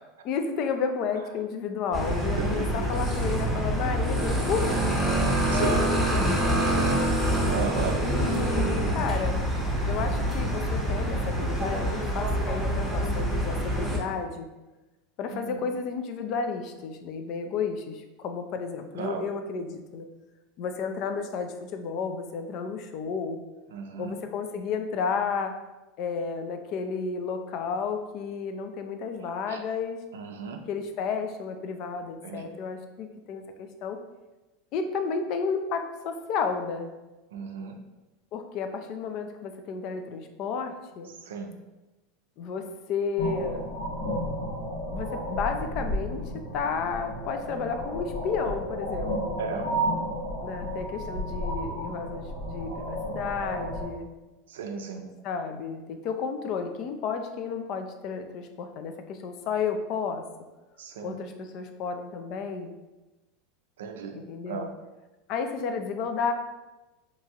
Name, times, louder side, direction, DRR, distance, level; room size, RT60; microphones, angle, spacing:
voice 1, 0.2-4.8 5.5-7.1 8.0-9.4 9.9-14.5 15.2-20.1 20.6-23.4 24.0-25.6 26.0-30.0 30.7-34.0 34.7-36.9 38.3-41.1 42.4-43.7 44.9-46.2 46.5-49.4 50.4-54.1 55.2-60.2 61.0-62.7 64.1-64.7 65.3-66.3, left 5 dB, 55° left, 6 dB, 0.3 m, -32 dB
sound 1, 1.9-14.0, right 1 dB, 5° left, 0.7 m, -26 dB
voice 2, 2.4-2.9 5.5-5.9 7.5-8.0 8.3-8.6 15.3-15.6 19.0-19.2 23.7-24.1 29.5-29.6 30.1-30.6 32.2-32.5 37.3-37.8 41.3-41.5 49.4-49.7 54.5-55.1 60.8-61.2 63.8-64.2 64.5-64.7, right 5 dB, 85° right, 5 dB, 0.3 m, -34 dB
sound 2, 43.2-53.8, equal, 80° left, 1.3 m, -32 dB
2.8 x 2.3 x 2.7 m, 1.1 s
hypercardioid pair, 100°, 0 cm